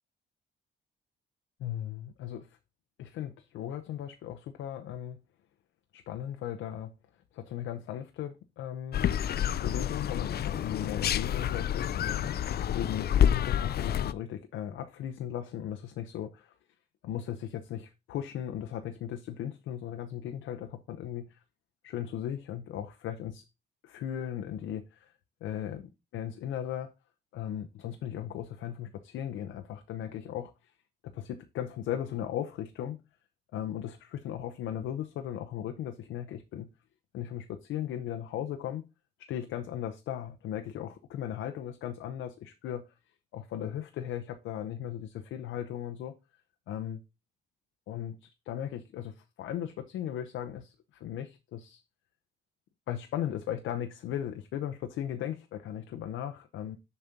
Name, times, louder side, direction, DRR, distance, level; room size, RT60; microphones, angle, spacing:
voice 1, 1.6-2.6 3.0-5.2 5.9-6.9 7.3-9.1 9.6-16.5 17.0-21.4 21.8-23.5 23.8-25.1 25.4-26.9 27.3-30.7 31.0-33.0 33.5-36.7 37.1-38.9 39.2-42.9 43.3-46.1 46.7-47.0 47.9-51.8 52.9-56.8, left 10 dB, 85° left, 0.8 m, -37 dB
sound 1, 8.9-14.1, left 10 dB, 55° left, 0.5 m, -28 dB
7.0 x 4.3 x 5.2 m
cardioid pair, 90°, 20 cm